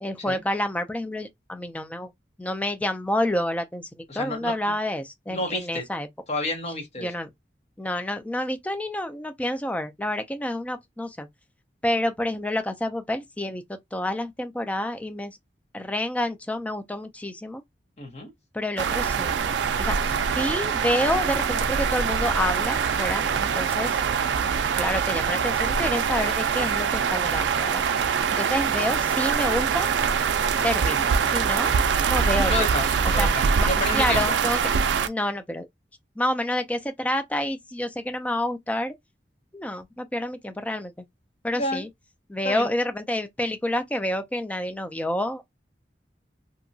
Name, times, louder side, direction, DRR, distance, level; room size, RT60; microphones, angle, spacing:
voice 1, 0.0-2.1 2.4-6.1 7.0-7.3 7.8-11.3 11.8-15.4 15.7-17.6 18.5-24.0 24.7-29.9 30.6-31.7 32.0-32.7 33.0-34.6 35.0-35.7 36.2-38.9 39.5-40.9 41.4-41.9 42.3-45.4, left 1 dB, 10° left, 0.3 m, -29 dB
voice 2, 4.1-4.5 5.3-5.8 6.3-7.1 18.0-18.3 23.2-23.5 32.5-34.2 41.5-41.8 42.4-42.7, left 2 dB, 35° left, 0.9 m, -30 dB
sound 1, 18.8-35.1, right 6 dB, 90° right, 0.3 m, -24 dB
2.7 x 2.2 x 2.6 m
head